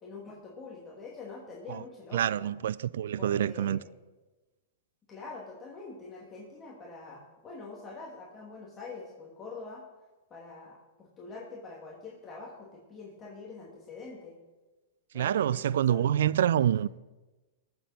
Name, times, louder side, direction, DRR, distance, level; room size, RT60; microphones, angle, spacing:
voice 1, 0.0-2.5 3.2-3.9 5.1-9.8 10.3-14.4 15.1-16.6, left 3 dB, 20° left, 2.4 m, -45 dB
voice 2, 2.1-3.8 15.1-16.9, right 10 dB, 75° right, 0.3 m, -26 dB
20.5 x 7.4 x 4.3 m
hypercardioid pair, 130°, 0 cm